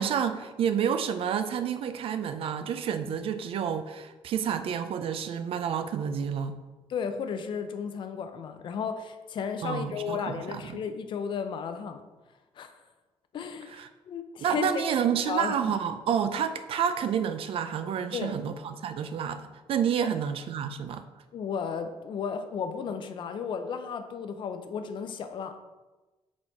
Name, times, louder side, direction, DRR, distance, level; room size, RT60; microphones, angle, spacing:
voice 1, 0.0-6.6 9.6-10.8 13.7-13.9 14.4-21.0, right 8 dB, 60° right, 10 dB, 0.4 m, -29 dB
voice 2, 6.9-12.0 12.6-12.7 13.3-14.7 15.3-15.7 18.1-18.4 20.0-20.1 21.3-25.6, left 6 dB, 50° left, 7 dB, 0.5 m, -34 dB
6.3 x 4.1 x 4.4 m, 1.2 s
cardioid pair, 175°, 11 cm